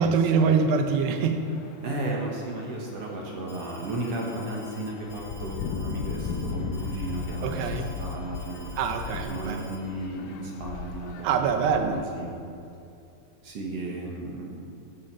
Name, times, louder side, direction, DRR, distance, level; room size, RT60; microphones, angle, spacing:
voice 1, 0.0-1.4 7.4-7.9 8.8-9.6 11.2-12.0, right 5 dB, 80° right, 6 dB, 3.0 m, -24 dB
sound 1, 0.9-12.2, left 6 dB, 90° left, 1.9 m, -37 dB
voice 2, 1.8-8.7 9.3-12.4 13.4-14.6, right 2 dB, 55° right, -2 dB, 1.9 m, -34 dB
Alarm, 3.5-9.8, left 2 dB, 45° left, 1.0 m, -49 dB
14.5 x 7.6 x 6.1 m, 2.5 s
omnidirectional pair, 4.8 m